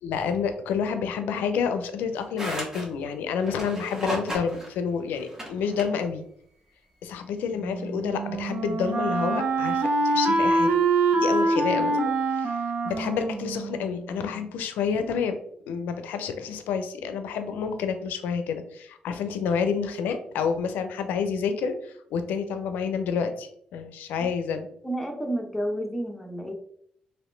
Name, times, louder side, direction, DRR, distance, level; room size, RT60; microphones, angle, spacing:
voice 1, 0.0-6.2 7.0-10.7 11.1-12.6 12.8-15.4 15.7-24.7, left 6 dB, 90° left, 8 dB, 0.4 m, -29 dB
sound 1, 2.1-2.9 3.4-5.9, equal, 15° right, 1.1 m, -35 dB
Wind instrument woodwind instrument, 7.6-14.4, right 3 dB, 60° right, 0.6 m, -25 dB
voice 2, 24.8-26.5, right 1 dB, 5° left, 1 dB, 0.8 m, -30 dB
2.9 x 2.9 x 3.1 m, 0.68 s
supercardioid pair, 60°, 3 cm